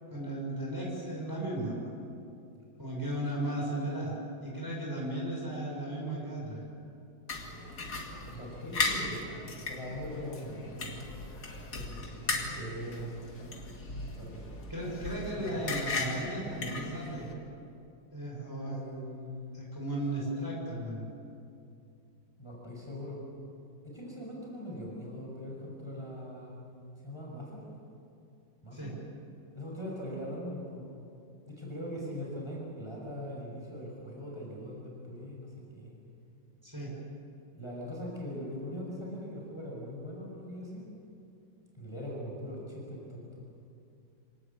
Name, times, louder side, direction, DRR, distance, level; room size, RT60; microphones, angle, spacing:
voice 1, 0.1-1.9 2.8-4.1 4.4-6.6 14.7-17.3 18.1-18.8 19.5-21.0 28.7-28.9 36.6-36.9, right 1 dB, 10° right, -4 dB, 6.2 m, -35 dB
sound 1, 7.3-17.3, left 3 dB, 60° left, 2.9 m, -37 dB
voice 2, 8.3-9.2 9.7-11.0 11.5-13.5 14.1-14.5 15.4-15.6 18.7-19.6 22.4-23.2 23.8-26.6 27.0-27.6 28.6-28.9 29.5-30.8 31.5-35.9 37.5-40.9 41.7-43.4, equal, 15° left, -4 dB, 5.8 m, -41 dB
26.5 x 18.5 x 8.5 m, 2.5 s
omnidirectional pair, 2.0 m